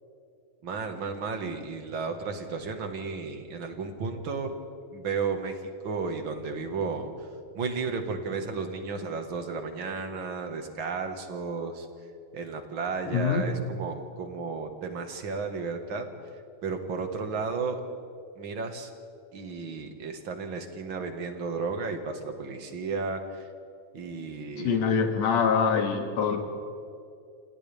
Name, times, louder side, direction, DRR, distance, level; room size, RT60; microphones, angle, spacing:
voice 1, 0.6-4.6 4.9-5.6 5.8-7.1 7.5-11.9 12.3-16.1 16.6-17.8 18.4-18.9 19.3-23.4 23.9-24.8, right 4 dB, 45° right, 5 dB, 2.3 m, -33 dB
voice 2, 13.0-13.4 24.6-26.4, left 6 dB, 65° left, 3 dB, 3.1 m, -25 dB
28.5 x 28.0 x 3.6 m, 2.5 s
omnidirectional pair, 3.4 m